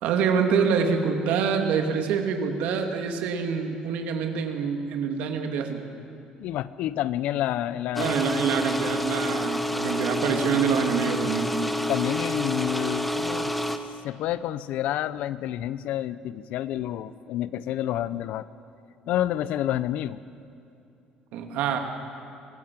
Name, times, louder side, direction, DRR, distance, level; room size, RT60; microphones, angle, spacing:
voice 1, 0.0-5.8 8.0-11.6 21.3-21.8, right 6 dB, 75° right, 4 dB, 2.4 m, -26 dB
voice 2, 6.4-8.2 11.9-13.6 14.0-18.5 19.1-20.2, left 12 dB, 70° left, 16 dB, 0.7 m, -29 dB
sound 1, 8.0-13.8, left 1 dB, 5° left, 1.0 m, -28 dB
24.0 x 18.5 x 7.7 m, 2.6 s
cardioid pair, 160°, 3 cm